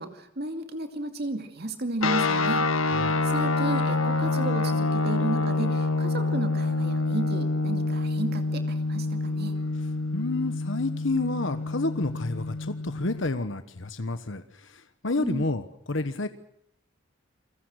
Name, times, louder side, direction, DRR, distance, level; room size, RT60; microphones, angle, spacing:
voice 1, 0.0-9.5 15.2-15.5, right 2 dB, 50° right, 6 dB, 2.5 m, -33 dB
sound 1, 2.0-13.2, left 3 dB, 85° left, 1.8 m, -27 dB
voice 2, 2.9-3.3 10.1-16.3, left 2 dB, 65° left, 10 dB, 1.3 m, -30 dB
29.0 x 22.5 x 6.6 m, 0.73 s
head